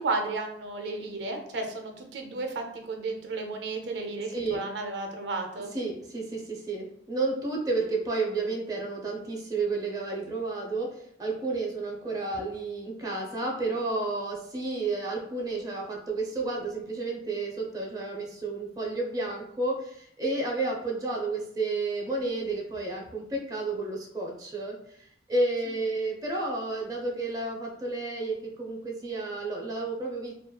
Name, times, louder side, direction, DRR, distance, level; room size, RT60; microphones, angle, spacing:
voice 1, 0.0-5.7, right 3 dB, 80° right, 3 dB, 0.4 m, -33 dB
voice 2, 5.7-30.3, right 3 dB, 20° right, -1 dB, 0.5 m, -31 dB
2.8 x 2.2 x 2.2 m, 0.68 s
head